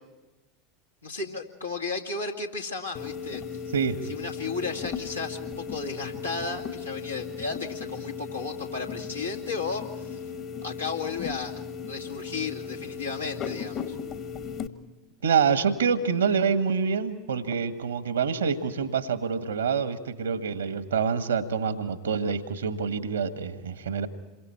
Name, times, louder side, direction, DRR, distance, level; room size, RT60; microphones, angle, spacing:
voice 1, 1.0-3.4 4.0-10.2 10.6-11.5 11.9-14.0, left 4 dB, 85° left, -1 dB, 2.4 m, -34 dB
sound 1, 2.9-14.7, left 6 dB, 45° left, 1.6 m, -36 dB
voice 2, 15.2-24.1, right 6 dB, 75° right, 10 dB, 1.5 m, -26 dB
28.0 x 23.5 x 4.5 m, 1.2 s
figure-of-eight pair, 80°, 0 cm